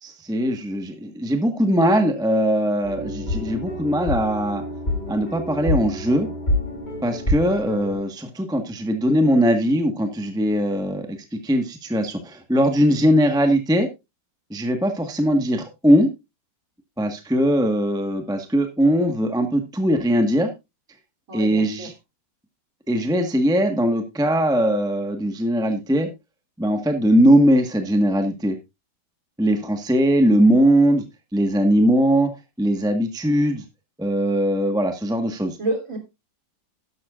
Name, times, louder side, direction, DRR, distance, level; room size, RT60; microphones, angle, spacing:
voice 1, 0.0-4.6 5.1-6.3 7.0-13.9 14.5-16.1 17.0-20.5 21.3-21.9 22.9-26.1 26.6-28.5 29.4-31.0 31.3-32.3 32.6-33.6 34.0-35.6, equal, ahead, 6 dB, 1.2 m, -20 dB
sound 1, 2.8-8.0, left 1 dB, 35° left, 7.5 m, -27 dB
voice 2, 21.3-21.9 35.6-36.0, right 2 dB, 45° right, 2 dB, 3.7 m, -28 dB
13.0 x 12.0 x 2.5 m, 0.24 s
omnidirectional pair, 2.0 m